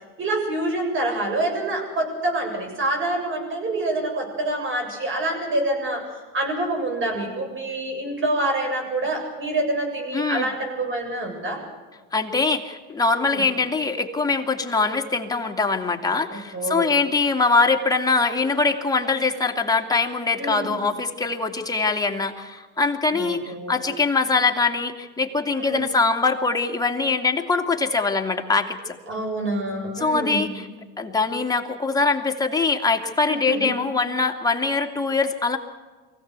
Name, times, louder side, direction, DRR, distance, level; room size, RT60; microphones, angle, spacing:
voice 1, 0.2-6.0 6.3-11.6 13.3-13.4 16.3-16.9 20.4-20.7 23.1-23.8 25.5-25.9 29.1-30.5 33.3-33.7, right 2 dB, 40° right, 3 dB, 7.7 m, -26 dB
voice 2, 10.1-10.5 12.1-29.0 30.0-30.7 31.0-35.6, left 4 dB, 10° left, 3 dB, 2.3 m, -23 dB
23.5 x 16.5 x 8.2 m, 1.3 s
supercardioid pair, 110°, 30 cm